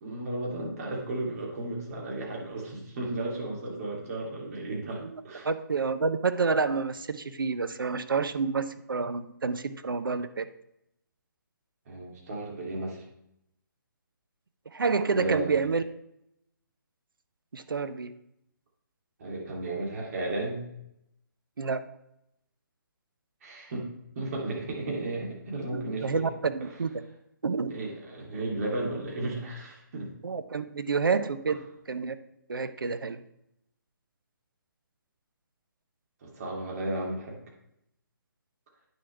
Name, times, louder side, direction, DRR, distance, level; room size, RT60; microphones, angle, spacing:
voice 1, 0.0-5.5 11.9-13.0 15.1-15.5 19.2-20.6 23.4-23.9 24.1-26.2 27.7-30.1 36.2-37.4, right 2 dB, 45° right, -3 dB, 2.9 m, -34 dB
voice 2, 5.4-10.5 14.7-15.8 17.5-18.1 21.6-21.8 25.7-27.0 27.4-27.7 30.2-31.6 31.9-32.2 32.5-33.2, right 4 dB, 80° right, 12 dB, 0.7 m, -29 dB
9.3 x 6.5 x 3.4 m, 0.80 s
hypercardioid pair, 145°, 11 cm